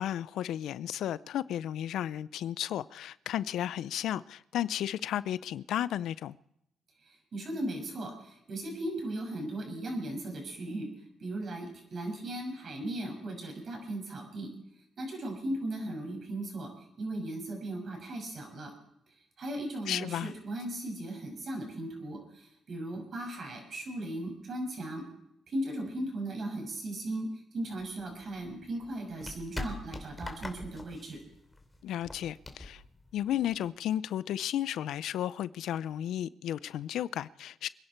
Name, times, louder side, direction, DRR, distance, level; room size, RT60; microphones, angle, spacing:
voice 1, 0.0-6.4 19.9-20.3 31.8-32.8 33.1-37.7, left 11 dB, 80° left, 0.5 m, -33 dB
voice 2, 7.0-10.9 11.2-14.5 15.0-18.7 19.4-25.1 25.5-31.2, right 1 dB, 50° right, 6.3 m, -37 dB
sound 1, 27.7-33.7, left 2 dB, 15° left, 2.8 m, -44 dB
26.0 x 10.5 x 4.4 m
cardioid pair, 90°, 0 cm